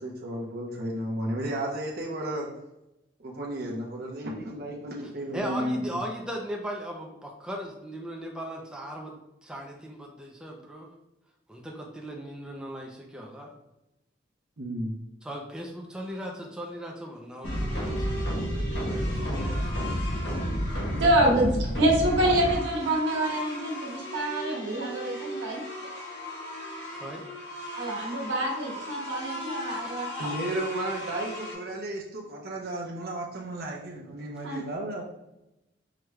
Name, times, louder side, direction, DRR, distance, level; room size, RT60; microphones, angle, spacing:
voice 1, 0.0-2.5 3.2-6.0 14.6-14.9 30.2-35.0, right 1 dB, 55° right, -2 dB, 0.6 m, -33 dB
voice 2, 5.3-10.9 11.5-13.5 15.2-20.0 26.9-27.2 29.7-30.4, equal, 5° right, -1 dB, 0.4 m, -38 dB
sound 1, 17.4-31.5, equal, 80° left, 1.3 m, -38 dB
sound 2, 17.4-22.5, equal, 60° left, 1.0 m, -30 dB
voice 3, 20.9-25.6 27.8-30.3 34.4-34.6, right 1 dB, 80° right, -2 dB, 1.1 m, -26 dB
4.8 x 2.2 x 3.0 m, 0.91 s
head